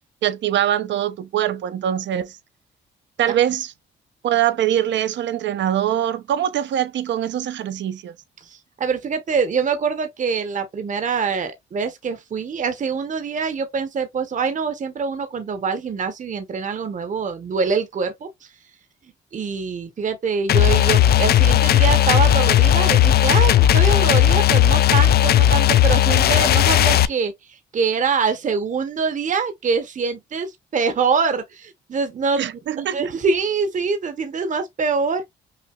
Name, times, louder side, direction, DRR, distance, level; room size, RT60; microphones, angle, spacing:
voice 1, 0.2-2.4 3.2-3.7 4.2-8.2 32.4-33.1, right 11 dB, 65° right, 0.7 m, -23 dB
voice 2, 8.4-18.5 19.3-32.5 32.9-35.3, right 5 dB, 40° right, 0.9 m, -24 dB
sound 1, 20.5-27.1, left 11 dB, 50° left, 0.4 m, -15 dB
5.8 x 2.7 x 2.3 m
cardioid pair, 90°, 20 cm